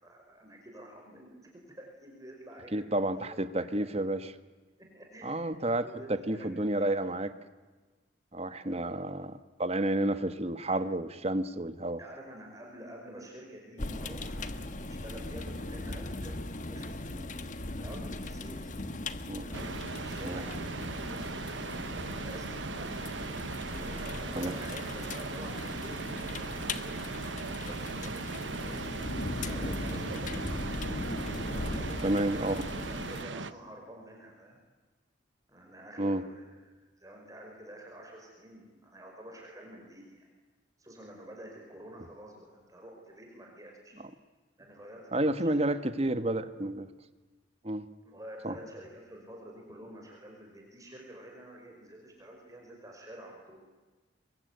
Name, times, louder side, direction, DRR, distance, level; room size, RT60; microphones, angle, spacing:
voice 1, 0.0-3.9 4.8-5.4 5.8-7.0 8.6-8.9 12.0-17.2 17.7-18.7 19.4-23.1 23.8-28.9 29.4-30.6 31.5-34.6 35.5-40.3 40.8-44.0 44.6-45.5 46.1-46.5 48.0-53.6, right 1 dB, 20° right, 1 dB, 5.3 m, -49 dB
voice 2, 2.7-4.3 5.2-7.3 8.3-12.0 19.3-19.5 20.2-20.4 24.3-24.5 32.0-32.6 36.0-36.2 45.1-46.9 47.6-47.9 48.4-48.5, right 1 dB, 35° right, 11 dB, 1.5 m, -30 dB
sound 1, 13.8-33.2, left 2 dB, 45° left, 1.3 m, -38 dB
sound 2, 19.5-33.5, right 4 dB, 85° right, 1.2 m, -38 dB
27.5 x 23.0 x 9.4 m, 1.3 s
head